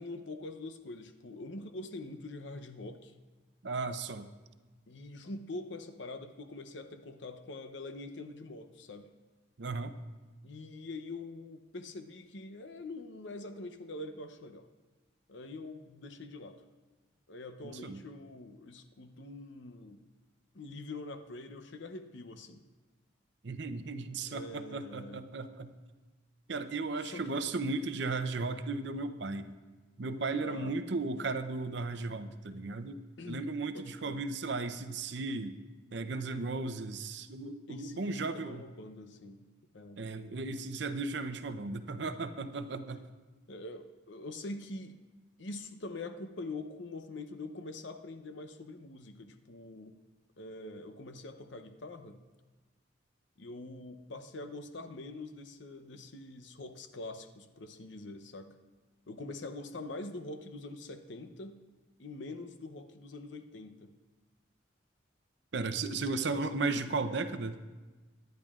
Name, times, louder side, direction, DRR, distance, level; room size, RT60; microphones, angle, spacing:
voice 1, 0.0-3.1 4.9-9.1 10.4-14.7 15.3-16.6 17.3-20.0 20.5-22.6 24.3-25.2 27.0-27.4 27.7-27.9 30.4-30.8 33.2-33.5 33.7-34.2 37.7-39.5 39.7-40.0 43.5-45.0 45.4-49.9 50.4-52.2 53.4-58.6 59.1-61.6 62.0-63.9 65.9-66.8, left 2 dB, 65° left, 8 dB, 0.7 m, -44 dB
voice 2, 3.6-4.3 9.6-10.0 17.8-18.0 23.4-25.7 26.5-29.5 30.0-35.6 35.9-38.6 40.0-43.0 65.5-67.6, right 3 dB, 60° right, 10 dB, 0.6 m, -35 dB
23.5 x 10.5 x 2.4 m, 1.3 s
head